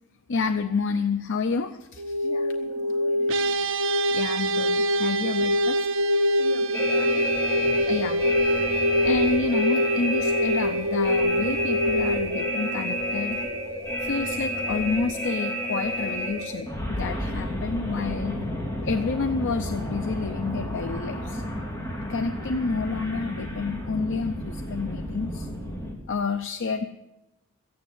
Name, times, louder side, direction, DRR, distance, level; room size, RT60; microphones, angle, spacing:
voice 1, 0.3-2.1 4.1-5.9 7.9-8.2 9.0-13.4 14.0-18.4 18.8-21.4 22.1-25.5 26.1-26.8, left 4 dB, 55° left, 8 dB, 0.6 m, -29 dB
sound 1, 2.0-12.4, left 1 dB, 35° right, 1.5 m, -25 dB
voice 2, 2.2-3.7 6.4-7.8, left 3 dB, 75° left, 3 dB, 1.7 m, -42 dB
sound 2, 3.3-14.7, right 3 dB, 60° right, 0.7 m, -31 dB
sound 3, 6.7-25.9, equal, 15° left, 3.3 m, -30 dB
14.0 x 9.5 x 8.0 m, 0.97 s
head